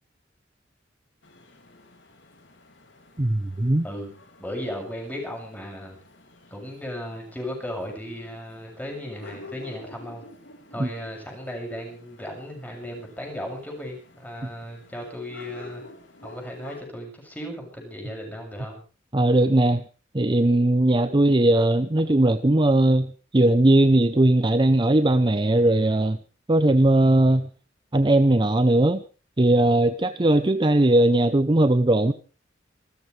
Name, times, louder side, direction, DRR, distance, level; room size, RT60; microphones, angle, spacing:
sound 1, 1.2-16.8, left 2 dB, 70° left, 2.7 m, -49 dB
voice 1, 3.2-3.9 10.8-10.9 19.1-19.8 20.1-26.2 26.5-27.5 27.9-29.0 29.4-32.1, right 1 dB, 25° right, 11 dB, 0.7 m, -19 dB
voice 2, 4.4-6.0 6.5-10.2 10.7-15.8 16.2-18.8, equal, 10° left, 1 dB, 6.8 m, -36 dB
26.5 x 14.5 x 3.4 m, 0.35 s
head